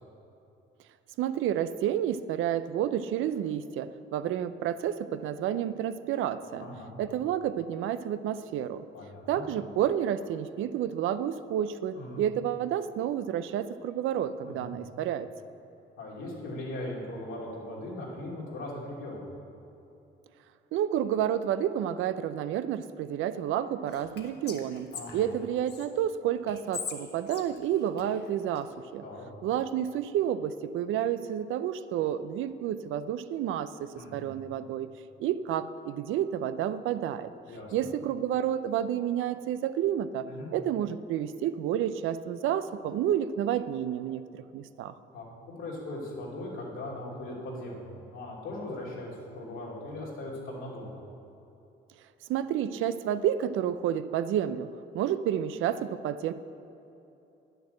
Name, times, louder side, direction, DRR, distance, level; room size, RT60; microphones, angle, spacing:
voice 1, 1.2-6.7 7.0-8.8 9.3-15.3 20.7-24.9 25.1-29.0 29.4-34.9 35.2-37.3 37.7-40.3 40.5-44.2 44.5-44.9 52.3-54.7 54.9-56.3, right 10 dB, 85° right, 13 dB, 0.5 m, -30 dB
voice 2, 6.6-6.9 8.9-9.4 11.9-12.2 14.4-14.7 16.0-19.2 24.9-25.3 29.0-29.3 33.9-34.3 37.5-37.9 40.2-40.5 45.1-45.2 45.6-50.9, left 1 dB, 85° left, -4 dB, 2.7 m, -39 dB
Whispering, 23.9-25.9 26.5-28.6, left 6 dB, 55° left, 1.2 m, -42 dB
9.8 x 6.7 x 7.9 m, 2.9 s
cardioid pair, 90°, 20 cm